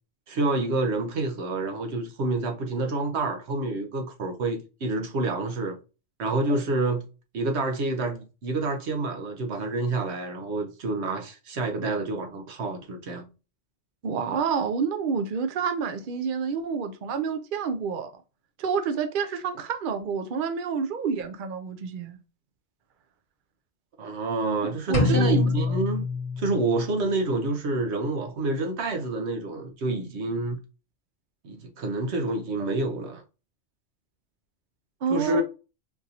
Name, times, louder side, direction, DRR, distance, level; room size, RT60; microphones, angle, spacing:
voice 1, 0.3-5.8 6.2-7.0 7.3-13.3 24.0-26.1 26.4-30.6 31.4-33.2 35.1-35.4, right 2 dB, 80° right, 1.1 m, -28 dB
voice 2, 14.0-18.1 18.6-22.2 24.6-25.5 35.0-35.4, right 6 dB, 55° right, 0.7 m, -28 dB
sound 1, 24.9-26.9, left 3 dB, 50° left, 1.2 m, -25 dB
4.5 x 2.6 x 2.8 m
omnidirectional pair, 1.1 m